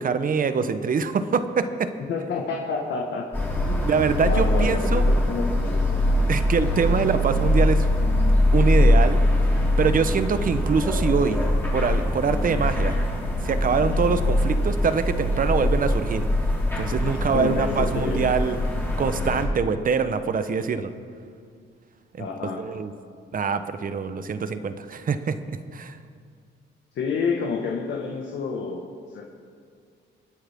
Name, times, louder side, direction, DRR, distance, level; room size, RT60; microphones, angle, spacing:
voice 1, 0.0-1.9 3.8-5.1 6.3-7.9 8.5-9.2 9.8-11.4 11.7-13.0 13.4-16.3 16.8-18.6 19.0-20.9 22.1-22.3 22.6-22.9 23.3-26.0, right 5 dB, 45° right, 10 dB, 0.9 m, -24 dB
voice 2, 2.0-3.2 3.6-3.9 4.2-6.0 17.3-18.3 22.2-22.6 26.9-28.8 29.1-29.2, left 5 dB, 70° left, 0 dB, 1.6 m, -29 dB
sound 1, 3.3-19.5, left 1 dB, 10° left, 3.3 m, -22 dB
26.0 x 9.8 x 3.6 m, 2.1 s
cardioid pair, 90°, 20 cm